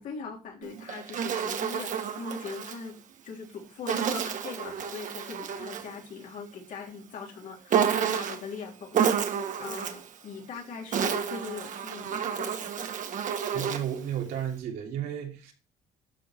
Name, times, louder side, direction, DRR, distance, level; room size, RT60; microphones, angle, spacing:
voice 1, 0.0-3.0 3.2-9.3 9.6-12.9, left 5 dB, 65° left, 3.5 m, -41 dB
Insect, 0.6-2.8 3.9-5.9 7.7-8.5 8.9-10.1 10.7-14.0, right 8 dB, 55° right, 1.4 m, -30 dB
voice 2, 13.5-15.5, right 10 dB, 85° right, 3.1 m, -33 dB
13.0 x 4.6 x 4.5 m
cardioid pair, 110°, 15 cm